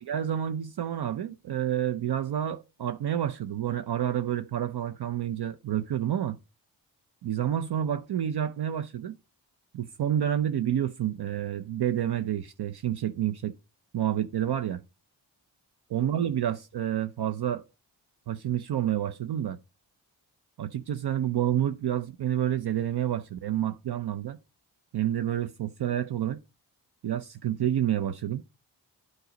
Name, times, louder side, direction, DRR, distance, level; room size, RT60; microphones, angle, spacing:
voice 1, 0.0-6.4 7.2-9.2 9.7-13.5 13.9-14.8 15.9-17.6 18.3-19.6 20.6-24.4 24.9-26.4 27.0-28.4, right 10 dB, 60° right, 0.6 m, -29 dB
8.9 x 4.1 x 5.1 m
supercardioid pair, 45°, 46 cm